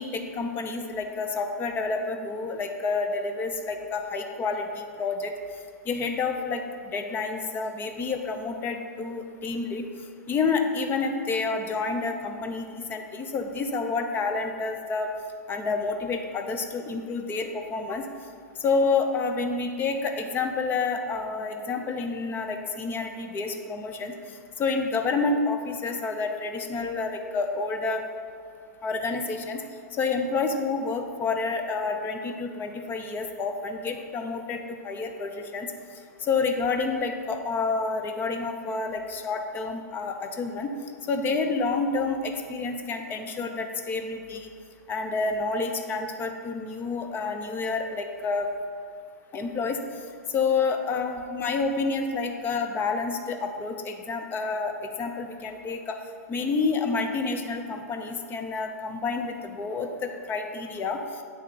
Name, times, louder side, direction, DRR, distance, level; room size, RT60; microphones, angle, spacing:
voice 1, 0.0-5.3 5.9-9.9 10.3-15.1 15.5-18.0 18.6-24.2 24.6-28.0 28.8-29.6 29.9-35.7 36.2-40.7 41.1-44.5 44.9-48.5 49.3-49.8 50.3-54.7 55.0-56.0 56.3-61.0, left 4 dB, 20° left, 5 dB, 0.6 m, -29 dB
8.6 x 3.7 x 5.8 m, 2.2 s
hypercardioid pair, 135°, 9 cm